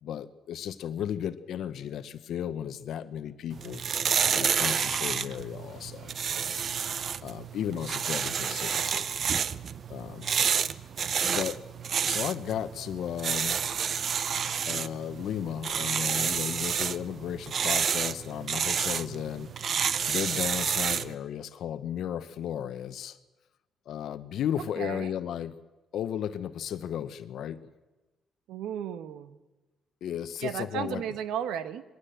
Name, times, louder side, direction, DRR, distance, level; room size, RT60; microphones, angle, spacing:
voice 1, 0.0-3.8 4.3-6.1 7.2-9.1 9.9-10.3 11.2-11.6 12.0-13.6 14.7-19.5 20.1-23.2 23.9-25.6 25.9-27.6 30.0-31.0, left 9 dB, 75° left, 12 dB, 0.9 m, -34 dB
sound 1, 3.5-21.1, right 7 dB, 55° right, 0.7 m, -30 dB
voice 2, 24.8-25.1 28.5-29.4 30.4-31.8, right 9 dB, 90° right, 13 dB, 1.0 m, -34 dB
21.5 x 16.5 x 7.9 m, 1.1 s
cardioid pair, 90°, 0 cm